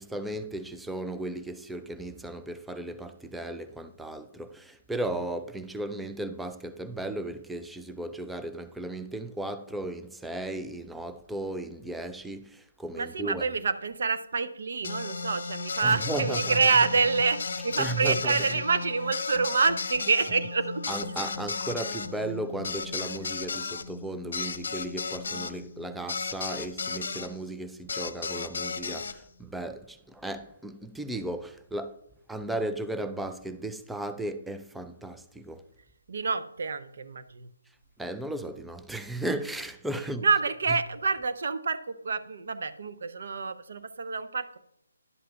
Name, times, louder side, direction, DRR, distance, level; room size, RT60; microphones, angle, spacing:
voice 1, 0.0-13.4 15.8-16.6 17.8-18.4 20.9-32.0 32.3-35.6 38.0-40.3, right 1 dB, 5° right, 0.3 m, -35 dB
voice 2, 13.0-20.8 36.1-37.5 40.2-44.6, right 4 dB, 55° right, 0.6 m, -27 dB
sound 1, 14.8-27.3 27.9-29.2, left 4 dB, 55° left, 0.6 m, -35 dB
11.0 x 7.6 x 2.3 m
figure-of-eight pair, 145°, 0 cm